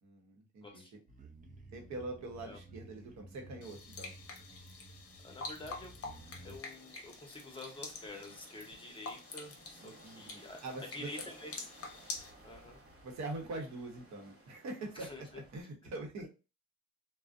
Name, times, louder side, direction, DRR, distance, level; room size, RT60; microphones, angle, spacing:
voice 1, 0.0-1.0 1.7-4.1 9.8-11.3 13.0-16.3, right 2 dB, 65° right, 2 dB, 0.9 m, -44 dB
sound 1, 1.1-6.6, right 2 dB, 25° right, 0.5 m, -54 dB
sound 2, 3.6-12.3, left 3 dB, 50° left, 0.7 m, -47 dB
voice 2, 5.2-5.9 6.4-11.6 12.4-12.8 14.9-15.2 16.2-16.3, left 2 dB, 15° left, 2 dB, 0.8 m, -48 dB
sound 3, 6.0-15.6, right 2 dB, 45° right, 1.2 m, -59 dB
2.5 x 2.0 x 2.4 m, 0.30 s
cardioid pair, 90°, 30 cm